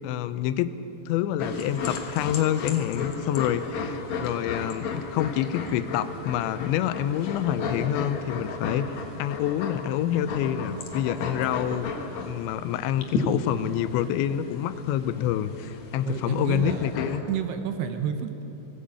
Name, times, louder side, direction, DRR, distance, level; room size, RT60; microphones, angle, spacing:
voice 1, 0.0-0.7 1.1-8.9 9.2-17.3, left 11 dB, 85° left, 13 dB, 3.0 m, -27 dB
sound 1, 1.4-17.2, left 4 dB, 60° left, 2.0 m, -34 dB
voice 2, 16.1-16.9 17.3-18.4, right 9 dB, 75° right, 7 dB, 2.9 m, -30 dB
20.0 x 15.5 x 8.6 m, 2.9 s
omnidirectional pair, 5.2 m